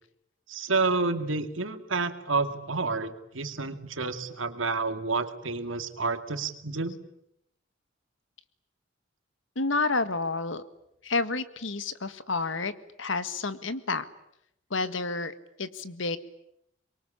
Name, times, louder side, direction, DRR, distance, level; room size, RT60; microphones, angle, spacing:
voice 1, 0.5-7.0, right 3 dB, 85° right, 8 dB, 2.3 m, -29 dB
voice 2, 9.5-10.6 11.0-12.7 13.0-14.0 14.7-16.2, left 3 dB, 75° left, 13 dB, 1.7 m, -30 dB
25.5 x 23.0 x 10.0 m, 0.79 s
head